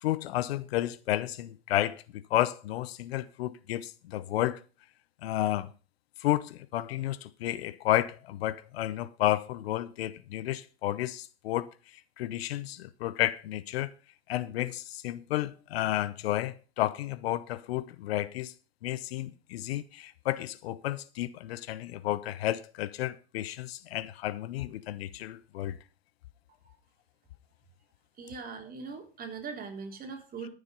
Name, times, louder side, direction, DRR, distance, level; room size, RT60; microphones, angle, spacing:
voice 1, 0.0-4.6 5.2-5.7 6.2-13.9 14.3-18.5 18.8-25.8, left 14 dB, 65° left, 0.9 m, -32 dB
voice 2, 28.2-30.5, right 5 dB, 25° right, 3.6 m, -40 dB
13.5 x 7.1 x 5.4 m
hypercardioid pair, 100°, 33 cm